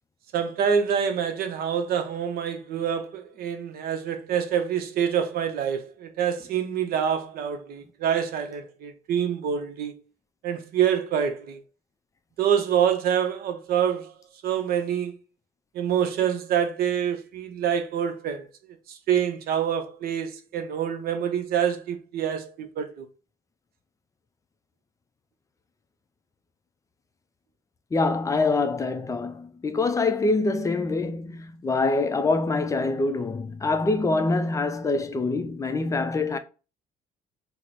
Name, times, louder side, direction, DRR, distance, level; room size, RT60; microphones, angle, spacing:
voice 1, 0.3-9.9 10.4-11.6 12.4-14.1 14.4-15.2 15.7-18.5 18.9-23.1, right 8 dB, 65° right, 0.6 m, -26 dB
voice 2, 27.9-36.4, left 3 dB, 20° left, 0.4 m, -25 dB
3.0 x 2.0 x 4.0 m
cardioid pair, 110°, 17 cm